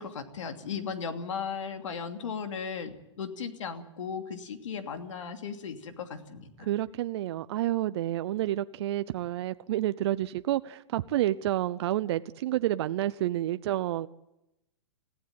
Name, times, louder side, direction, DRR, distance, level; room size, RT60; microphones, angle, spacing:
voice 1, 0.0-6.7, left 6 dB, 85° left, 6 dB, 2.8 m, -36 dB
voice 2, 6.6-14.1, right 13 dB, 60° right, 13 dB, 0.7 m, -29 dB
20.5 x 15.5 x 9.4 m, 0.90 s
hypercardioid pair, 145°, 16 cm